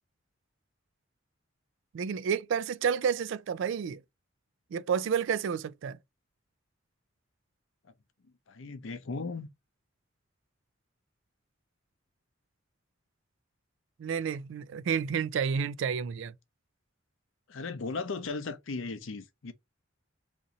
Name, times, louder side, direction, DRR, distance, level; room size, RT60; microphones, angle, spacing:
voice 1, 1.9-4.0 4.7-6.0 14.0-16.3, right 7 dB, 65° right, 0.3 m, -30 dB
voice 2, 8.5-9.5 17.5-19.5, left 4 dB, 70° left, 0.6 m, -36 dB
2.9 x 2.6 x 3.8 m
head